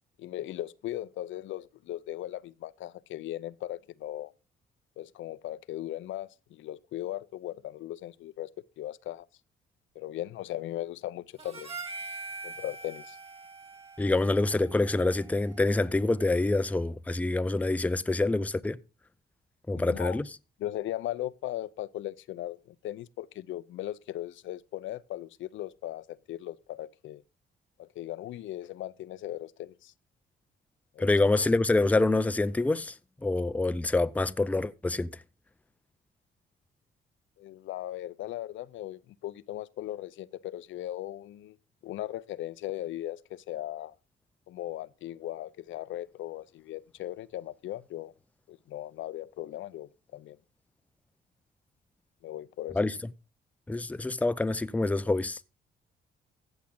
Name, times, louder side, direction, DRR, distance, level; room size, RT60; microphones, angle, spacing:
voice 1, 0.2-4.3 5.0-8.5 8.8-9.3 10.0-11.7 12.4-13.2 19.7-20.2 20.6-27.2 27.8-29.9 30.9-31.2 37.4-41.6 41.8-43.9 44.5-48.1 48.5-50.4 52.2-52.8, left 13 dB, 75° left, 0.6 m, -38 dB
Harmonica, 11.4-15.9, right 3 dB, 30° right, 3.3 m, -43 dB
voice 2, 14.0-18.8 19.7-20.2 31.0-32.9 33.2-35.1 52.8-52.9 53.7-55.4, left 2 dB, 5° left, 0.5 m, -26 dB
14.5 x 7.3 x 3.8 m
cardioid pair, 90°, 20 cm